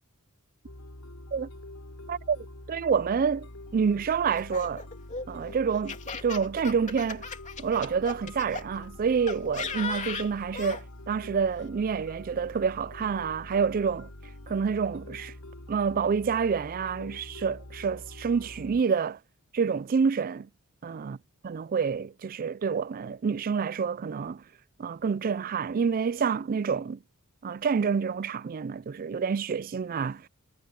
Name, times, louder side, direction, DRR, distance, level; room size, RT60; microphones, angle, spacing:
sound 1, 0.6-18.8, left 1 dB, 80° left, 4.1 m, -45 dB
voice 1, 2.1-3.5 3.7-4.8 5.3-6.0 6.2-7.3 7.6-14.1 14.5-15.3 15.7-19.2 19.5-20.5 20.8-21.2 21.4-24.4 24.8-27.0 27.4-30.3, right 6 dB, 40° right, 0.3 m, -28 dB
Laughter, 4.3-8.6 9.3-10.8, left 4 dB, 35° left, 2.9 m, -37 dB
head